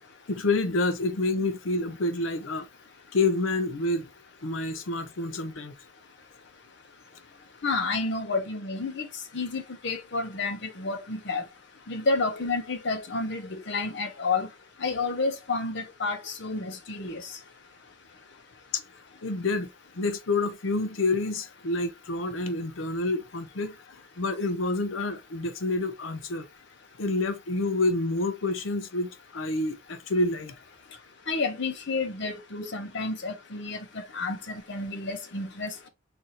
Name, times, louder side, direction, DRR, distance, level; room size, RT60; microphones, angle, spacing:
voice 1, 0.3-2.7 3.1-4.1 4.4-5.7 18.7-18.8 19.2-19.7 20.0-23.7 24.2-26.5 27.0-30.6, left 2 dB, 90° left, 0.7 m, -28 dB
voice 2, 7.6-9.1 9.3-11.4 11.9-14.5 14.8-17.2 31.3-35.9, left 3 dB, 60° left, 0.8 m, -30 dB
4.0 x 2.7 x 2.9 m
head